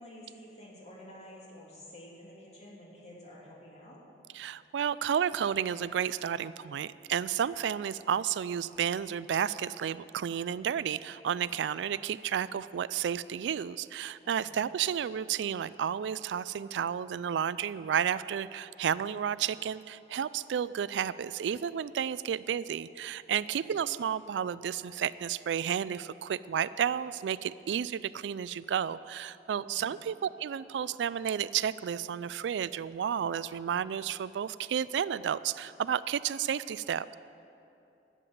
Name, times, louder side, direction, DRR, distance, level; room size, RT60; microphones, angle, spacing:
voice 1, 0.0-4.1 14.2-14.6 23.5-23.7 29.6-30.0, left 1 dB, 40° left, -4 dB, 2.9 m, -50 dB
voice 2, 4.3-37.1, right 8 dB, 85° right, 17 dB, 0.3 m, -32 dB
12.0 x 7.5 x 9.2 m, 2.8 s
head